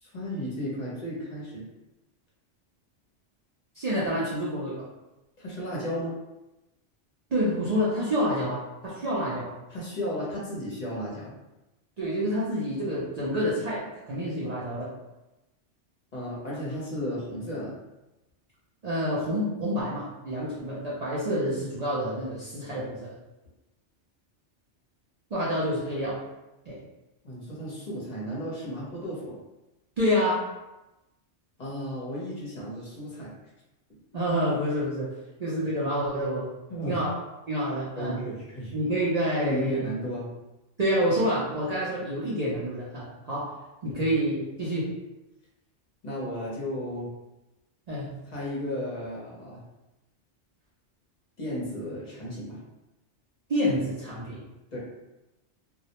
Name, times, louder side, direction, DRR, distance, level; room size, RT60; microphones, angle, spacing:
voice 1, 0.0-1.6 5.4-6.1 9.7-11.3 16.1-17.7 27.2-29.4 31.6-33.3 36.7-37.0 38.0-38.8 39.4-40.3 43.9-44.1 46.0-47.1 48.3-49.6 51.4-52.6 54.7-54.8, equal, 45° left, -6 dB, 0.7 m, -34 dB
voice 2, 3.8-4.8 7.3-9.5 12.0-14.9 18.8-23.2 25.3-26.2 26.7-26.8 30.0-30.5 34.1-35.1 35.4-36.5 36.9-37.2 37.5-38.2 38.7-39.9 40.8-43.5 43.8-44.9 47.9-48.1 53.5-54.4, equal, 55° right, -8 dB, 0.4 m, -28 dB
2.3 x 2.0 x 2.8 m, 0.98 s
omnidirectional pair, 1.2 m